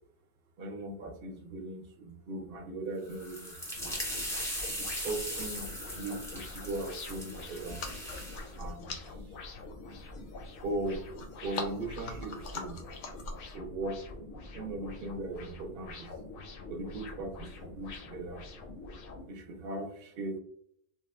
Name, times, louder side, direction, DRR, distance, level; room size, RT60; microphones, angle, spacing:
voice 1, 0.6-4.0 4.8-7.8 8.6-9.3 10.6-11.0 11.4-12.8 13.5-14.0 14.5-16.1 16.7-18.4 19.3-20.4, right 2 dB, 60° right, 4 dB, 0.7 m, -39 dB
sound 1, 3.0-8.5, equal, 5° left, 0.5 m, -39 dB
sound 2, 3.7-19.2, left 3 dB, 60° left, 0.6 m, -46 dB
sound 3, 7.6-13.6, left 3 dB, 90° left, 0.9 m, -44 dB
3.4 x 2.1 x 2.3 m, 0.67 s
omnidirectional pair, 1.2 m